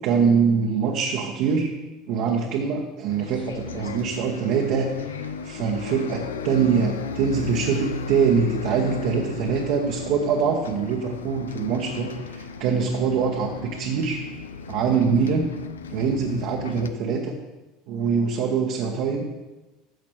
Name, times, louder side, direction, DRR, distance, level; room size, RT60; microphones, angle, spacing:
voice 1, 0.0-1.7 2.1-14.2 14.7-15.5 15.9-17.4 17.9-19.2, right 6 dB, 55° right, -1 dB, 1.1 m, -24 dB
Bus, 3.1-16.9, left 4 dB, 80° left, 0.4 m, -35 dB
14.0 x 7.2 x 3.2 m, 1.1 s
figure-of-eight pair, 70°, 0 cm